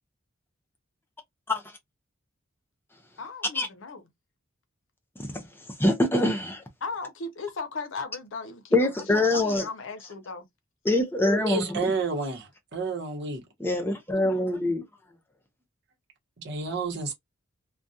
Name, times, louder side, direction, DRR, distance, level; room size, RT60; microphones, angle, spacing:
voice 1, 3.2-4.0 6.8-10.5, left 4 dB, 70° left, 0.6 m, -37 dB
voice 2, 5.8-6.6 8.7-9.7 10.8-11.9 13.6-14.8, left 1 dB, 10° left, 0.6 m, -24 dB
voice 3, 11.5-13.4 16.4-17.1, right 4 dB, 60° right, 0.9 m, -30 dB
2.4 x 2.2 x 2.6 m
head